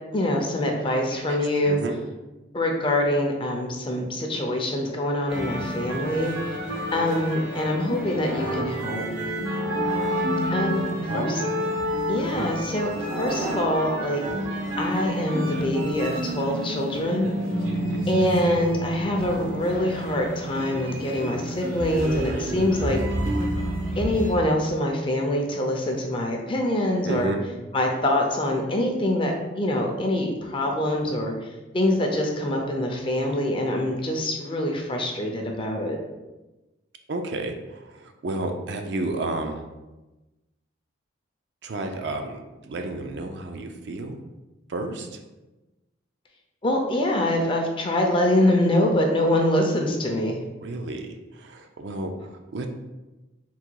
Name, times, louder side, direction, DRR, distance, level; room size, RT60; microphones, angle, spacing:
voice 1, 0.1-1.8 2.5-6.6 6.9-9.0 10.5-10.8 11.1-11.4 12.1-14.3 14.8-17.3 18.1-23.0 24.0-27.3 27.7-36.0 46.6-50.4, left 1 dB, 25° left, 1 dB, 0.5 m, -24 dB
voice 2, 1.1-2.0 11.1-11.4 17.7-18.1 27.0-27.4 37.1-39.6 41.6-44.2 44.7-45.1 50.6-52.7, right 2 dB, 60° right, 5 dB, 0.4 m, -32 dB
sound 1, 5.3-24.3, equal, 90° right, 1.0 m, -29 dB
3.7 x 2.2 x 4.5 m, 1.1 s
head